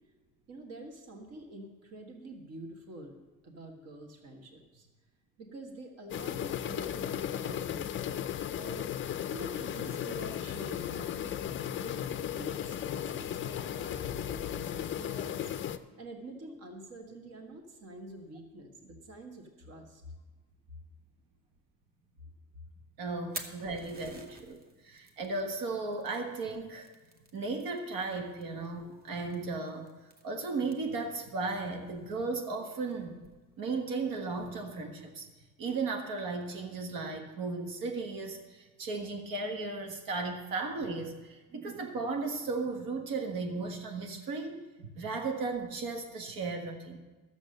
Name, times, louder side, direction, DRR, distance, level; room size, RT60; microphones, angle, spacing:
voice 1, 0.5-3.2 3.4-4.9 5.4-8.2 8.6-8.9 9.3-11.5 11.8-15.5 16.0-20.0, right 1 dB, 50° right, 3 dB, 1.4 m, -46 dB
sound 1, 6.1-15.8, left 10 dB, 35° left, 0.4 m, -35 dB
voice 2, 23.0-26.9 27.3-29.9 30.2-33.2 33.6-35.3 35.6-47.0, right 3 dB, 90° right, 4 dB, 1.5 m, -35 dB
Fire, 23.1-34.5, right 2 dB, 30° right, 0.9 m, -52 dB
12.5 x 7.2 x 6.5 m, 1.2 s
cardioid pair, 180°, 33 cm